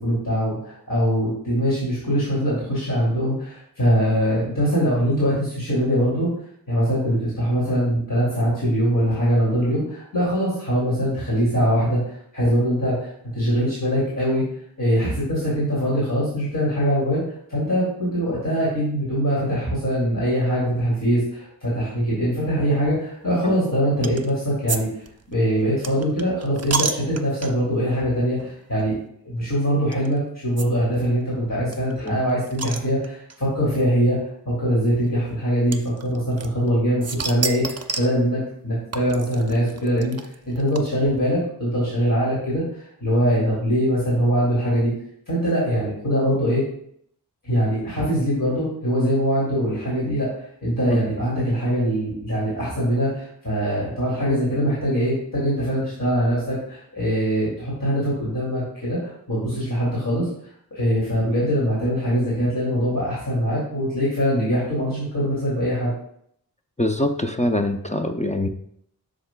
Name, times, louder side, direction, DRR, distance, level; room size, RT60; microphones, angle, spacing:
voice 1, 0.0-6.3 6.7-14.4 14.8-17.2 17.5-24.9 25.3-28.9 29.2-34.2 34.5-44.9 45.3-46.6 47.4-50.3 50.6-59.0 59.3-60.3 60.7-65.9, equal, 55° left, -8 dB, 2.6 m, -22 dB
sound 1, 24.0-24.3 24.7-24.8 25.1-27.8 28.4-28.5 28.8-28.9 29.9-30.1 30.6-30.7 30.9-31.0 31.2-31.3 31.7-33.4 34.3-34.4 35.7-36.7 37.0-38.2 38.9-41.2, right 4 dB, 40° right, 0.5 m, -30 dB
voice 2, 66.8-68.5, left 1 dB, 20° left, 5 dB, 0.5 m, -23 dB
7.6 x 6.5 x 2.2 m, 0.69 s
wide cardioid pair, 40°, 39 cm